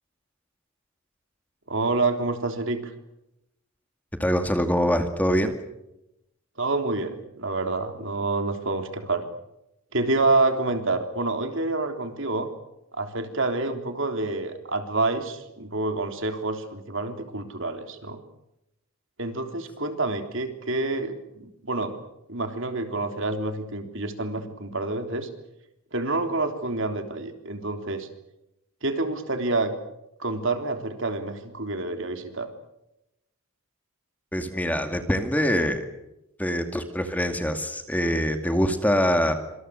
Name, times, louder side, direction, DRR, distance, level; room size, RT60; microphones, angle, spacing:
voice 1, 1.7-2.9 6.6-9.2 9.9-12.5 12.9-18.2 19.2-22.0 22.3-25.3 25.9-28.1 28.8-29.7 30.2-32.5, right 2 dB, 60° right, 7 dB, 3.5 m, -28 dB
voice 2, 4.2-5.5 34.3-35.8 36.4-39.3, equal, 5° left, 7 dB, 2.3 m, -24 dB
26.5 x 26.5 x 6.5 m, 0.86 s
head